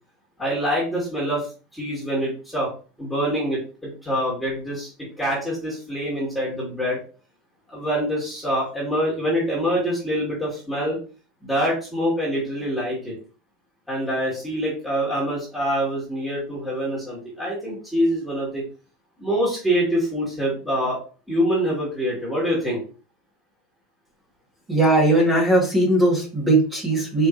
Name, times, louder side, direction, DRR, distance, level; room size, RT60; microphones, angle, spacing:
voice 1, 0.4-1.5 1.7-2.7 3.0-4.9 5.2-7.0 7.7-11.0 11.4-13.2 13.9-18.6 19.2-21.0 21.3-22.8, equal, ahead, -7 dB, 1.9 m, -25 dB
voice 2, 24.7-27.3, right 2 dB, 15° right, -2 dB, 1.5 m, -19 dB
4.4 x 3.3 x 2.5 m, 0.37 s
supercardioid pair, 125°, 0 cm